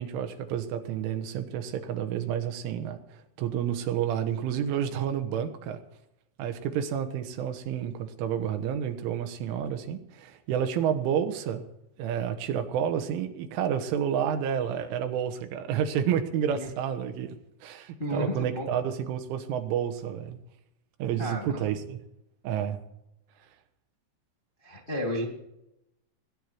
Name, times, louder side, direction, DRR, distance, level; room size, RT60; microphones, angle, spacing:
voice 1, 0.0-5.8 6.4-11.7 12.0-17.4 17.6-20.4 21.0-22.0 22.4-22.8, right 9 dB, 90° right, 7 dB, 3.8 m, -30 dB
voice 2, 18.0-18.7 21.2-21.7 24.6-25.3, equal, 25° left, 2 dB, 1.1 m, -32 dB
21.5 x 9.9 x 4.6 m, 0.86 s
omnidirectional pair, 5.5 m